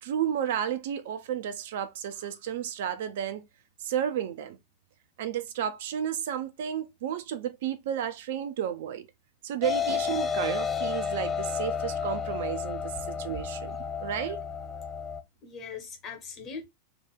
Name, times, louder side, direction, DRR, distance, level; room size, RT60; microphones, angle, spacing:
voice 1, 0.0-3.4 3.8-4.6 5.2-9.0 9.4-14.4, right 9 dB, 55° right, 0.4 m, -32 dB
sound 1, 9.6-15.2, left 6 dB, 15° left, 0.4 m, -31 dB
voice 2, 12.8-14.6 15.4-16.6, left 5 dB, 35° left, 1.2 m, -44 dB
2.8 x 2.3 x 3.5 m
figure-of-eight pair, 90°, 0 cm